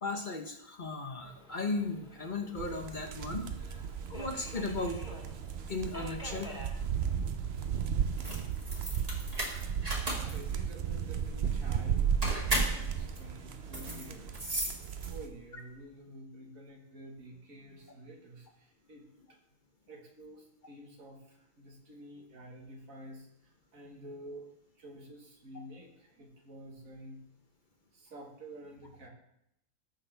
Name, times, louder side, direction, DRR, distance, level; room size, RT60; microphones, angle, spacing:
voice 1, 0.0-3.8 4.1-5.0 5.7-6.5, left 3 dB, 40° left, 4 dB, 1.0 m, -36 dB
Subway metro underground, 1.2-14.3, equal, 5° right, 1.8 m, -53 dB
sound 1, 2.6-15.3, right 7 dB, 60° right, 0.8 m, -35 dB
sound 2, 8.1-15.4, right 1 dB, 30° right, 1.8 m, -35 dB
voice 2, 10.1-14.6 15.1-19.4 19.9-24.5 24.8-27.2 27.9-29.1, right 1 dB, 90° right, 0 dB, 2.0 m, -50 dB
14.0 x 6.0 x 3.4 m, 0.77 s
omnidirectional pair, 1.4 m